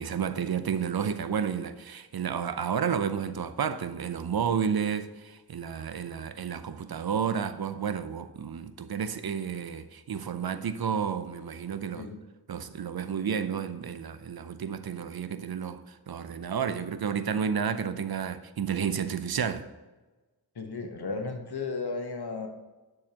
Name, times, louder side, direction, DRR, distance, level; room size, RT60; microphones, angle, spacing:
voice 1, 0.0-12.1 12.5-19.7, right 7 dB, 70° right, 0.6 m, -31 dB
voice 2, 20.5-22.5, left 4 dB, 75° left, 1.2 m, -34 dB
10.0 x 6.5 x 2.9 m
wide cardioid pair, 50°, 39 cm